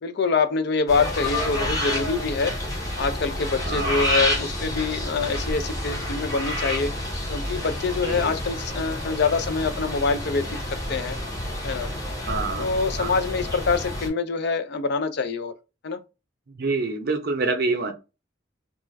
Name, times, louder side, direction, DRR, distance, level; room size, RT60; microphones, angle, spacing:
voice 1, 0.0-2.6 3.0-6.9 7.3-11.2 11.6-11.9 12.6-15.5 15.8-16.0, left 4 dB, 55° left, 0.4 m, -25 dB
sound 1, 0.9-14.1, left 1 dB, 20° left, 0.8 m, -29 dB
voice 2, 3.7-4.0 8.1-8.4 12.3-12.7 13.0-13.2 16.5-17.9, right 3 dB, 50° right, 0.6 m, -27 dB
2.4 x 2.2 x 3.2 m
head